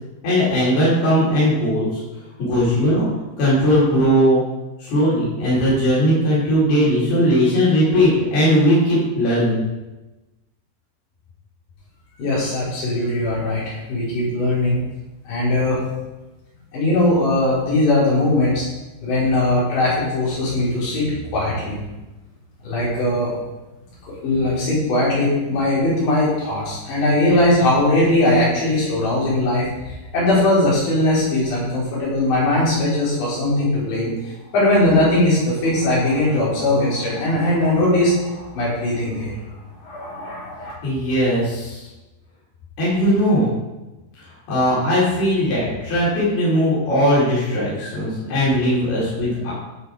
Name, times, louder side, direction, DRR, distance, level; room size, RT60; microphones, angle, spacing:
voice 1, 0.2-2.0 2.4-3.1 3.4-4.4 4.8-9.6 40.8-41.8 42.8-43.6 44.5-49.5, equal, 65° left, -8 dB, 6.5 m, -18 dB
voice 2, 12.2-14.8 15.3-15.8 16.7-18.6 19.0-21.8 22.6-23.3 24.2-34.1 34.5-39.3 39.8-40.7, left 1 dB, 85° left, -8 dB, 7.0 m, -20 dB
15.0 x 6.3 x 5.0 m, 1.1 s
omnidirectional pair, 4.9 m